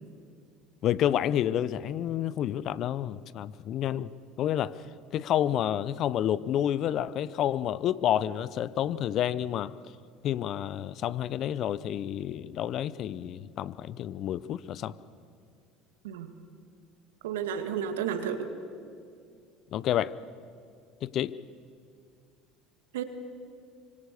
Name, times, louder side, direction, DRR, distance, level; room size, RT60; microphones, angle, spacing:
voice 1, 0.8-4.1 4.4-4.8 5.1-9.7 10.2-14.9 19.7-20.1 21.0-21.3, left 11 dB, 55° left, 18 dB, 0.7 m, -29 dB
voice 2, 17.2-18.5 22.9-23.0, right 8 dB, 80° right, 8 dB, 2.0 m, -32 dB
25.5 x 24.0 x 6.9 m, 2.3 s
hypercardioid pair, 70°, 0 cm